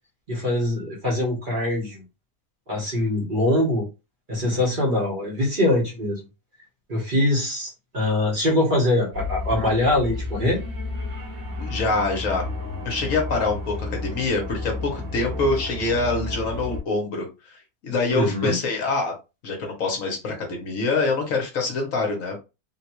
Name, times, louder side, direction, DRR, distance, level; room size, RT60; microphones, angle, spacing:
voice 1, 0.3-2.0 2.7-3.9 4.3-6.2 6.9-10.6 18.1-18.5, left 1 dB, 35° right, -3 dB, 1.0 m, -23 dB
sound 1, 9.1-16.8, left 3 dB, 65° right, 1.6 m, -32 dB
voice 2, 11.6-12.4 12.8-17.3 17.8-19.1 19.4-22.4, left 3 dB, 60° left, 2 dB, 1.3 m, -25 dB
3.8 x 2.3 x 2.9 m, 0.27 s
omnidirectional pair, 1.6 m